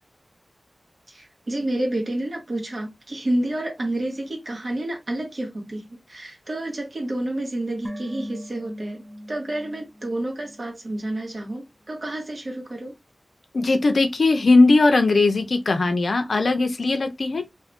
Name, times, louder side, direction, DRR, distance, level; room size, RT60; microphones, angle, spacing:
voice 1, 1.1-9.0 9.3-12.9, right 1 dB, 50° right, 1.3 m, -29 dB
sound 1, 7.8-11.2 11.4-11.5, equal, 10° right, 0.5 m, -40 dB
voice 2, 13.5-17.5, left 3 dB, 70° left, 0.5 m, -19 dB
2.6 x 2.6 x 3.5 m
wide cardioid pair, 85°, 0 cm